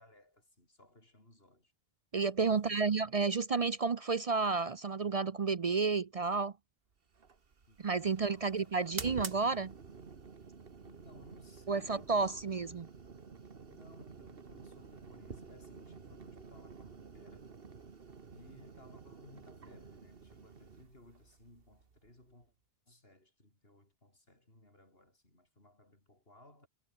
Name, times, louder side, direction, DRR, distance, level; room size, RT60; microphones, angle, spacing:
voice 1, 0.0-1.7 2.4-3.2 7.7-9.1 10.8-12.6 13.7-17.6 18.3-22.5 22.9-26.7, left 1 dB, 70° left, 6.9 m, -60 dB
voice 2, 2.1-6.5 7.8-9.7 11.7-12.9, right 4 dB, 40° right, 0.6 m, -31 dB
sound 1, 7.1-22.4, right 5 dB, 65° right, 1.7 m, -50 dB
omnidirectional pair, 1.1 m